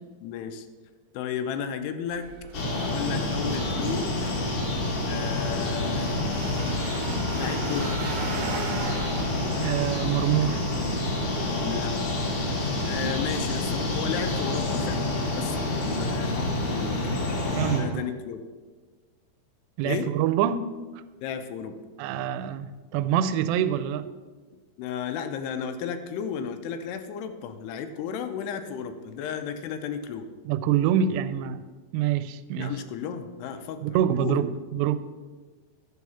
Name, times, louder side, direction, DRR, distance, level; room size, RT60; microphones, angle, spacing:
voice 1, 0.2-0.7 1.1-2.3 2.7-4.2 5.1-6.2 7.3-8.0 11.6-12.2 12.8-17.3 17.7-18.4 19.8-20.1 21.2-21.8 24.8-30.3 32.5-34.4, left 7 dB, 80° left, 8 dB, 2.7 m, -34 dB
sound 1, 2.1-13.2, right 5 dB, 70° right, 2.0 m, -40 dB
sound 2, 2.5-17.8, left 2 dB, 55° left, 1.7 m, -28 dB
voice 2, 9.6-10.7 17.6-18.0 19.8-20.6 22.0-24.1 30.5-31.7 31.9-32.8 33.8-35.0, right 10 dB, 90° right, 13 dB, 2.7 m, -25 dB
11.0 x 4.7 x 7.0 m, 1.4 s
omnidirectional pair, 4.8 m